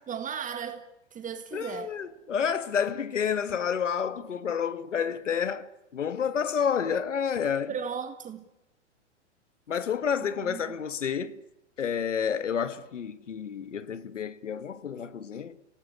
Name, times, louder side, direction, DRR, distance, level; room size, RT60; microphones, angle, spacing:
voice 1, 0.1-1.9 7.7-8.4 10.4-10.8, right 7 dB, 20° right, 1.8 m, -36 dB
voice 2, 1.5-7.7 9.7-11.4 11.8-15.6, left 7 dB, 80° left, 1.6 m, -30 dB
28.5 x 18.5 x 8.3 m
hypercardioid pair, 110°, 36 cm